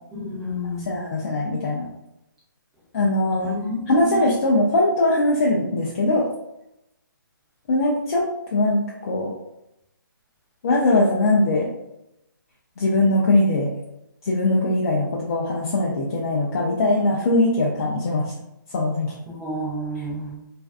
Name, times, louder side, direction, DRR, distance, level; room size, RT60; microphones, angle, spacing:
voice 1, 0.1-1.0 3.4-4.2 19.4-20.3, left 1 dB, 5° right, -11 dB, 0.9 m, -30 dB
voice 2, 0.9-1.9 2.9-3.5 3.9-6.3 7.7-9.3 10.6-11.7 12.8-13.7 14.2-18.3 18.7-19.1, left 2 dB, 40° left, -4 dB, 0.4 m, -21 dB
2.5 x 2.2 x 2.3 m, 0.85 s
hypercardioid pair, 155°, 12 cm